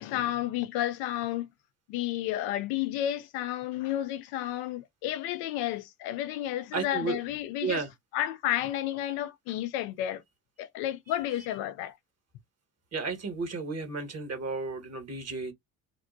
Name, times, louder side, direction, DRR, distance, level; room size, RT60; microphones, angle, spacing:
voice 1, 0.0-1.5 1.9-7.8 8.1-10.2 10.6-11.9, left 12 dB, 70° left, 0.6 m, -31 dB
voice 2, 6.7-7.2 7.6-7.9 12.9-15.5, right 4 dB, 40° right, 1.4 m, -33 dB
3.6 x 2.1 x 2.6 m
hypercardioid pair, 60°, 40 cm